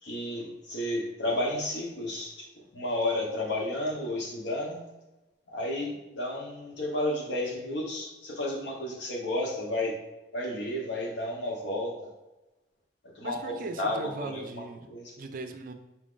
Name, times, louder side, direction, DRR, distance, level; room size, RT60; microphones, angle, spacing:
voice 1, 0.0-2.5 2.7-4.8 5.5-9.9 10.3-12.1 13.1-14.5 14.9-15.1, left 1 dB, 85° left, -1 dB, 1.1 m, -32 dB
voice 2, 13.2-14.9 15.2-15.7, right 3 dB, 50° right, 7 dB, 0.4 m, -39 dB
4.4 x 2.5 x 3.7 m, 1.0 s
head